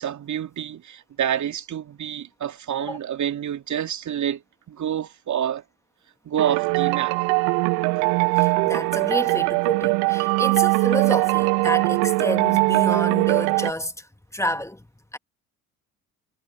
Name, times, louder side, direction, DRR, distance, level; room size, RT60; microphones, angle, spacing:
voice 1, 0.0-4.4 4.7-5.6 6.2-7.2, right 9 dB, 45° right, 2.6 m, -28 dB
sound 1, 6.4-13.7, right 34 dB, 65° right, 1.8 m, -21 dB
voice 2, 8.3-14.1 14.3-14.8 15.1-15.2, left 1 dB, 5° left, 2.6 m, -29 dB
figure-of-eight pair, 50°, 43 cm